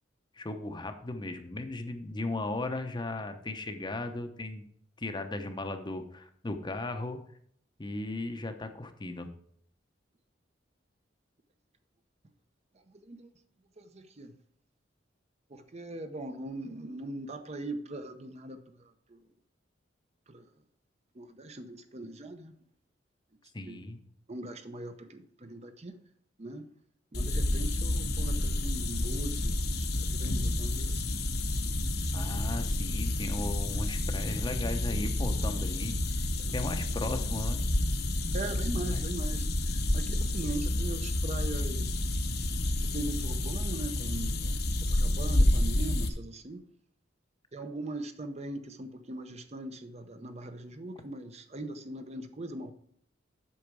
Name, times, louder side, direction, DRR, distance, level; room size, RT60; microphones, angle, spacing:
voice 1, 0.4-4.7 5.0-7.2 7.8-9.3 23.5-24.0 32.1-37.6 38.9-39.0, left 2 dB, 25° left, 0.8 m, -36 dB
voice 2, 12.9-13.3 13.8-14.3 15.5-19.2 20.3-20.5 21.1-22.5 23.7-23.8 24.3-26.0 26.4-26.7 27.1-31.2 36.4-36.8 38.3-42.1 42.8-44.6 44.9-46.6 47.5-52.7, right 2 dB, 35° right, 0.8 m, -40 dB
sound 1, 27.1-46.1, left 1 dB, 60° left, 1.1 m, -29 dB
8.6 x 6.4 x 4.7 m
head